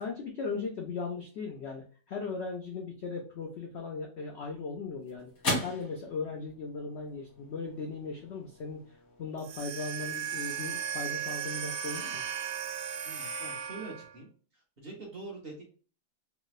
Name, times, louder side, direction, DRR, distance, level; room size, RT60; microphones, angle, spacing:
voice 1, 0.0-5.3 5.6-8.8 9.2-12.2, left 4 dB, 85° left, 1 dB, 0.5 m, -38 dB
sound 1, 4.2-12.7, left 2 dB, 55° left, 2.0 m, -41 dB
sound 2, 9.4-14.2, right 8 dB, 80° right, 1.3 m, -36 dB
voice 2, 13.0-14.3 14.5-15.6, right 3 dB, 45° right, -1 dB, 0.9 m, -44 dB
3.3 x 3.1 x 2.3 m, 0.40 s
omnidirectional pair, 1.9 m